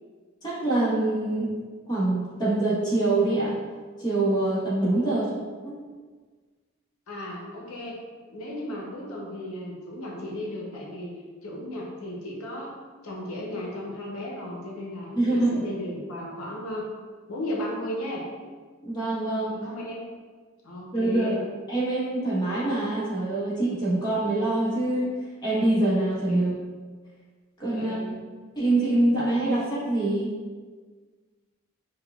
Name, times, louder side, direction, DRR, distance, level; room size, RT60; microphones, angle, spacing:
voice 1, 0.4-1.5 1.9-3.6 4.0-5.3 5.6-5.8 15.1-15.6 18.8-19.5 20.9-21.4 21.7-25.1 25.4-26.5 27.6-28.0 28.5-30.3, right 2 dB, 20° left, -9 dB, 1.0 m, -24 dB
voice 2, 5.0-5.4 7.1-8.0 8.3-11.1 11.4-12.7 13.0-16.9 17.3-18.2 19.5-20.0 20.6-21.4 26.3-26.4 27.7-28.2, left 1 dB, 90° left, -2 dB, 0.6 m, -35 dB
4.7 x 2.2 x 2.2 m, 1.5 s
head